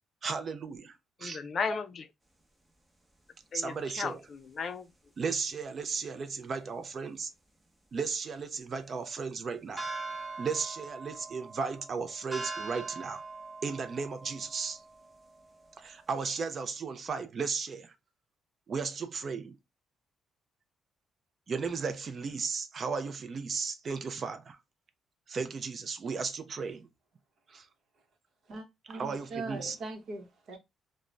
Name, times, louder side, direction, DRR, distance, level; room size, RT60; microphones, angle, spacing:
voice 1, 0.2-0.9 1.2-1.4 3.5-4.2 5.2-7.3 7.9-9.9 10.4-13.2 13.6-14.8 15.8-17.9 18.7-19.6 21.5-24.6 25.3-26.9 27.5-27.7 28.9-29.8, right 5 dB, 50° right, 0.4 m, -35 dB
voice 2, 1.2-2.1 3.5-4.9, left 5 dB, 50° left, 0.4 m, -35 dB
sound 1, 9.8-16.2, right 3 dB, 20° right, 0.7 m, -42 dB
voice 3, 28.5-30.6, right 3 dB, 65° right, 0.8 m, -41 dB
2.4 x 2.1 x 3.2 m
cardioid pair, 90°, 0 cm